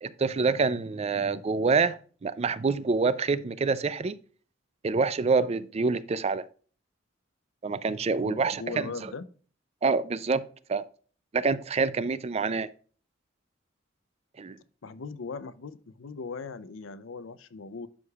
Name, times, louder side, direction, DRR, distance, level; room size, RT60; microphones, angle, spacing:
voice 1, 0.0-4.2 4.8-6.4 7.6-8.9 9.8-10.4 10.7-10.8 11.3-12.7 14.4-14.6, right 4 dB, 35° right, 0.4 m, -26 dB
voice 2, 8.1-9.3 14.8-17.9, left 4 dB, 90° left, 0.6 m, -39 dB
11.0 x 5.0 x 2.4 m
head